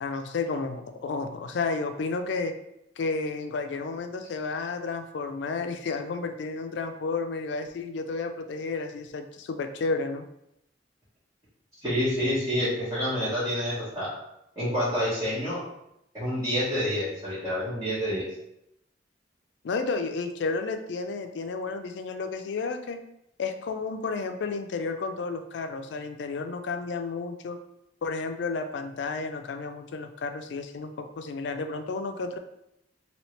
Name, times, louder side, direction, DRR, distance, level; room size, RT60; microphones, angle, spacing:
voice 1, 0.0-2.5 3.0-10.2 19.6-23.0 23.4-27.6 28.0-32.4, left 4 dB, 70° left, 7 dB, 0.4 m, -32 dB
voice 2, 11.8-14.1 14.5-15.6 16.1-18.2, equal, 20° right, -14 dB, 1.3 m, -28 dB
3.0 x 2.8 x 3.1 m, 0.81 s
head